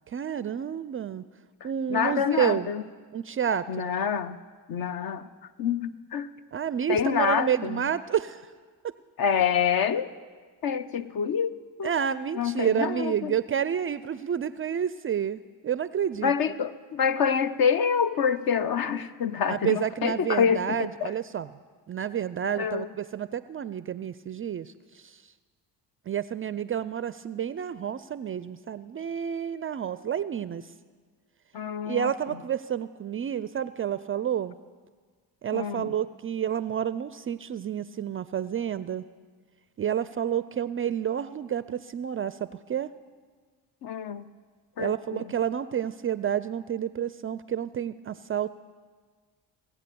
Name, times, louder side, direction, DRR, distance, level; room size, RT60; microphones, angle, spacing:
voice 1, 0.1-1.2 1.6-2.7 3.1-3.9 6.5-8.5 8.8-8.9 11.8-16.3 19.5-21.5 21.9-25.2 26.1-30.7 31.8-34.5 35.4-39.0 39.8-42.9 44.8-48.5, right 9 dB, 30° right, 16 dB, 0.4 m, -29 dB
voice 2, 1.9-2.8 3.7-4.4 4.7-5.3 5.6-6.3 6.9-7.9 9.2-10.1 10.6-11.9 12.3-13.4 16.2-21.1 22.6-22.9 31.5-32.1 35.5-35.9 43.8-44.2 44.8-45.3, left 7 dB, 50° left, 13 dB, 0.8 m, -27 dB
17.5 x 8.4 x 6.9 m, 1.5 s
supercardioid pair, 65°, 45 cm